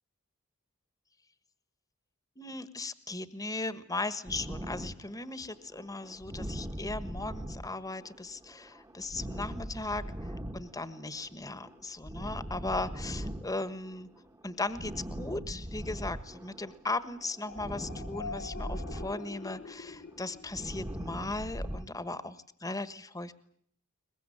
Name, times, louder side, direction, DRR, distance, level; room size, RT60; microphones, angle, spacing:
voice 1, 2.4-14.1 14.4-14.9 15.2-23.3, left 2 dB, 15° left, 13 dB, 1.4 m, -37 dB
sound 1, 4.3-16.9 17.2-21.9, equal, 15° right, 1.4 m, -41 dB
sound 2, 17.5-21.2, left 4 dB, 50° left, 1.7 m, -44 dB
23.0 x 21.5 x 10.0 m, 0.62 s
head